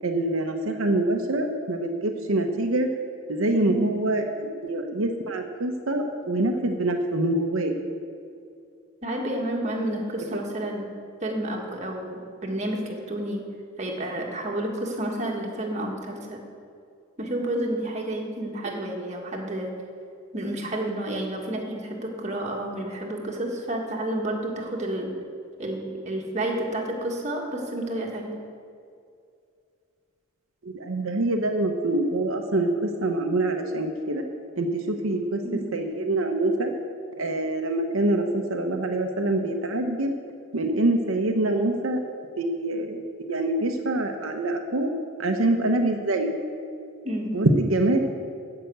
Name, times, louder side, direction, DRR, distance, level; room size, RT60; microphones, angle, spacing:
voice 1, 0.0-2.9 3.3-7.7 30.6-34.2 34.6-35.4 35.7-36.7 37.2-40.1 40.5-42.0 42.4-43.0 43.3-44.9 45.2-46.3 47.3-48.0, right 2 dB, 75° right, 3 dB, 0.9 m, -25 dB
voice 2, 3.6-4.1 9.0-10.9 11.2-13.4 13.8-16.4 17.2-19.7 20.3-25.1 25.6-28.4 35.4-35.8 47.0-47.4, right 1 dB, 35° right, 0 dB, 1.7 m, -30 dB
14.5 x 5.9 x 7.9 m, 2.4 s
head